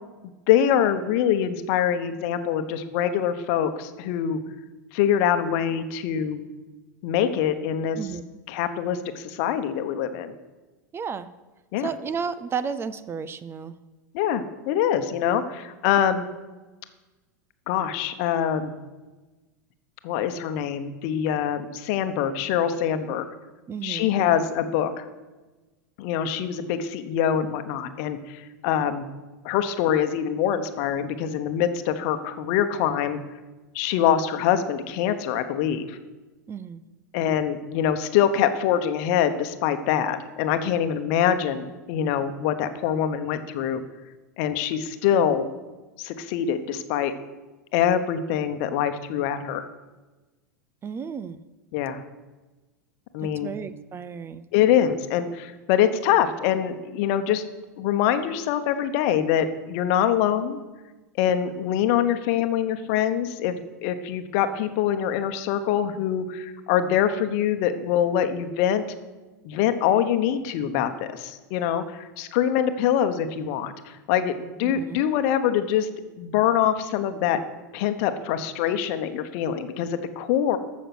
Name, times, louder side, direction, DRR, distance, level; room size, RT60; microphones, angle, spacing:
voice 1, 0.5-4.4 4.9-6.4 7.0-8.0 8.5-10.3 11.7-11.9 14.1-16.3 17.7-18.7 20.0-23.2 23.8-25.0 26.0-29.1 29.4-33.2 33.7-36.0 37.1-43.8 44.4-45.5 46.0-47.1 47.7-49.7 51.7-52.0 53.1-53.5 54.5-57.4 57.8-60.6 61.2-68.8 69.4-75.9 76.2-77.4 77.7-80.6, left 9 dB, 55° left, 10 dB, 1.0 m, -24 dB
voice 2, 10.9-11.3 11.8-13.8 23.7-24.1 36.5-36.8 50.8-51.4 53.2-54.4 74.6-75.0, right 6 dB, 25° right, 14 dB, 0.6 m, -33 dB
14.5 x 6.4 x 6.1 m, 1.2 s
hypercardioid pair, 90°, 10 cm